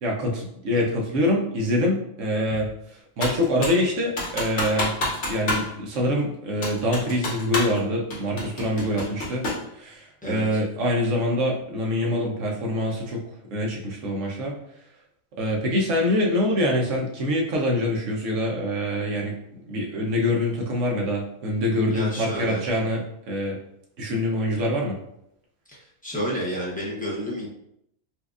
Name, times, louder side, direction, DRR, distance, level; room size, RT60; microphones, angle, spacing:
voice 1, 0.0-2.7 3.2-4.9 5.3-9.4 9.7-13.2 13.5-14.5 15.4-19.3 19.6-23.0 23.3-23.6 24.0-25.0, left 1 dB, 65° right, -1 dB, 1.1 m, -25 dB
Computer keyboard, 3.2-3.8 4.2-5.7 5.9-6.0 6.6-7.8 8.1-9.7, left 1 dB, 55° left, 1.2 m, -28 dB
voice 2, 10.2-10.6 21.9-22.7 25.7-27.5, equal, 10° left, -6 dB, 0.4 m, -31 dB
4.3 x 2.4 x 2.4 m, 0.75 s
omnidirectional pair, 1.5 m